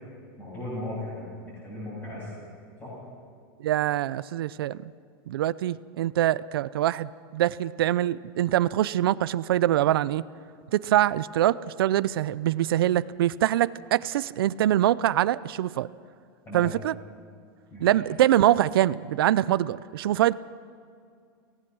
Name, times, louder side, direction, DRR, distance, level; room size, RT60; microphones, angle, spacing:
voice 1, 0.4-2.5 2.8-3.0 16.5-16.7 17.7-18.0, left 1 dB, 15° left, -9 dB, 7.8 m, -37 dB
voice 2, 3.6-4.9 5.3-10.2 10.7-15.9 16.5-16.9 17.8-20.3, right 13 dB, 75° right, 18 dB, 0.5 m, -24 dB
24.0 x 18.0 x 6.3 m, 2.2 s
supercardioid pair, 180°, 12 cm